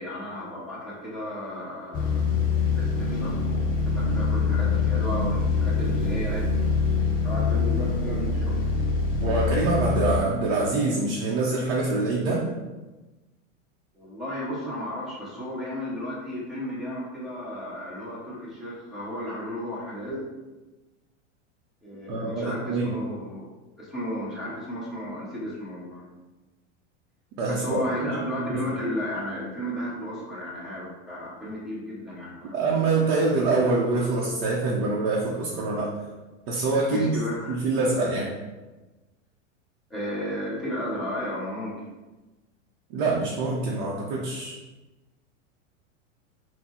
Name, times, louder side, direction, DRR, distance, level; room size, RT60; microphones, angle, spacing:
voice 1, 0.0-2.4 2.7-3.4 3.9-6.5 7.2-8.6 13.9-20.2 21.8-23.5 23.8-26.1 27.5-32.6 36.9-37.6 39.9-41.8, equal, ahead, -8 dB, 1.3 m, -33 dB
sound 1, 1.9-10.2, left 4 dB, 25° left, 0.6 m, -24 dB
voice 2, 9.1-12.5 22.1-22.9 27.4-28.1 28.5-28.6 32.5-35.9 36.5-37.1 37.5-38.3 42.9-44.6, right 3 dB, 45° right, -4 dB, 0.9 m, -25 dB
4.3 x 2.3 x 4.3 m, 1.1 s
supercardioid pair, 135°, 38 cm